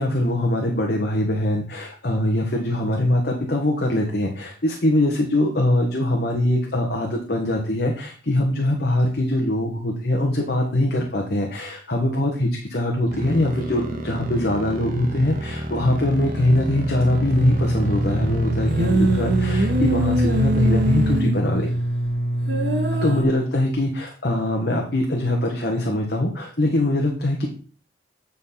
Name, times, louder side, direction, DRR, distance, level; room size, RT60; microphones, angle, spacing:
voice 1, 0.0-21.7 23.0-27.5, left 1 dB, 60° left, 1 dB, 1.4 m, -22 dB
sound 1, 13.1-21.2, equal, 50° right, 1.6 m, -29 dB
sound 2, 17.3-23.2, right 1 dB, 80° right, 2.2 m, -22 dB
9.4 x 5.6 x 4.2 m, 0.40 s
head